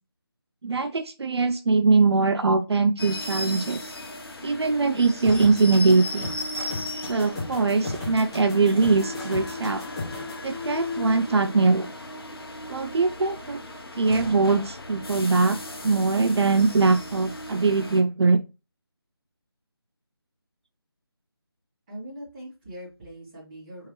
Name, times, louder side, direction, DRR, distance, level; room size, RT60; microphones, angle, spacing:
voice 1, 0.6-3.9 4.4-6.3 7.1-9.8 10.4-11.9 12.7-13.6 14.0-15.6 15.8-18.4, right 4 dB, 80° right, 9 dB, 0.4 m, -22 dB
sound 1, 3.0-18.0, left 2 dB, 65° left, 0.8 m, -36 dB
sound 2, 5.2-10.3, left 3 dB, 10° left, 0.7 m, -36 dB
voice 2, 21.9-23.9, equal, 20° right, -7 dB, 2.0 m, -41 dB
3.7 x 3.0 x 3.0 m, 0.29 s
figure-of-eight pair, 165°, 13 cm